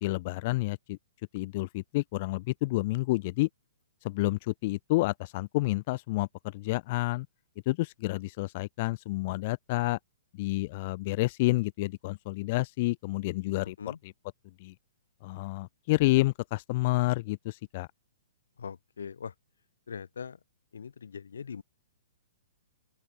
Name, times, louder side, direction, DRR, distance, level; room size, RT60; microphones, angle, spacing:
voice 1, 0.0-1.0 1.3-3.5 4.0-7.3 7.7-10.0 10.4-14.1 14.6-14.7 15.2-17.9, left 21 dB, 40° left, 2.6 m, -29 dB
voice 2, 13.6-14.0 18.6-19.3 19.9-20.4 20.7-21.6, left 6 dB, 85° left, 5.7 m, -41 dB
open air
hypercardioid pair, 155°, 0 cm